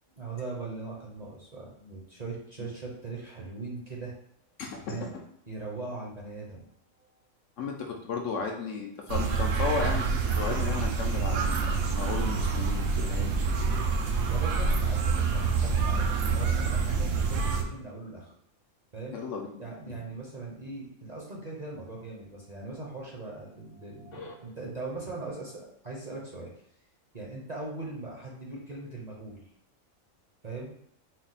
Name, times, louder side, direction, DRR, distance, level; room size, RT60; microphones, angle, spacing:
voice 1, 0.2-4.1 4.8-5.1 5.5-6.7 14.3-18.3 18.9-19.2 19.6-26.5 27.1-29.4 30.4-30.7, right 3 dB, 35° right, -3 dB, 0.7 m, -40 dB
voice 2, 4.6-5.2 7.6-10.1 10.3-13.9 19.1-19.6 19.9-20.0 24.1-24.3, left 4 dB, 70° left, 1 dB, 0.9 m, -35 dB
sound 1, 9.1-17.6, right 4 dB, 80° right, 1.1 m, -27 dB
4.2 x 2.2 x 4.0 m, 0.70 s
omnidirectional pair, 1.5 m